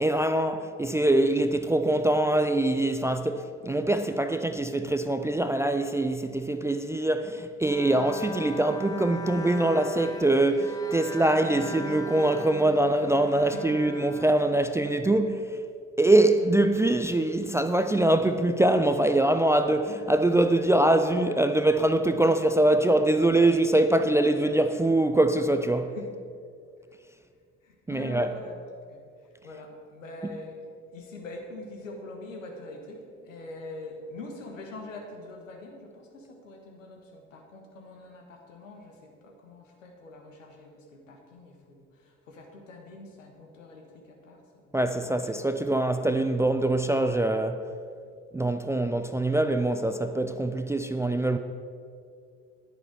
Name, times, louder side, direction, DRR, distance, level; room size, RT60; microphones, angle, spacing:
voice 1, 0.0-15.6 16.0-26.0 27.9-28.3 44.7-47.7 48.3-51.4, right 1 dB, 10° right, 0.4 m, -23 dB
Bowed string instrument, 7.6-15.0, left 2 dB, 10° left, 0.8 m, -39 dB
voice 2, 27.6-28.5 28.9-45.0 48.0-48.1, left 2 dB, 80° left, 1.4 m, -44 dB
10.0 x 9.9 x 4.6 m
figure-of-eight pair, 50°, 38 cm